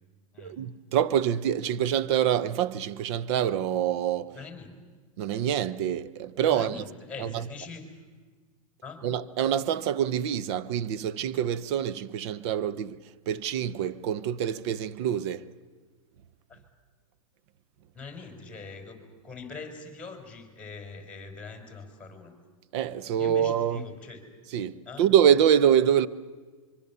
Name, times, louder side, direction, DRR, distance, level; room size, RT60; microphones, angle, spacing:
voice 1, 0.4-4.3 5.2-6.8 7.2-7.4 9.0-13.0 13.3-15.5 22.7-23.8 24.5-26.1, right 9 dB, 50° right, 0.8 m, -25 dB
voice 2, 4.3-4.7 6.5-8.0 8.8-9.0 16.5-16.6 17.9-22.3 23.2-24.2 24.9-25.1, left 4 dB, 5° left, 4.3 m, -43 dB
25.0 x 24.0 x 6.9 m
hypercardioid pair, 135°, 18 cm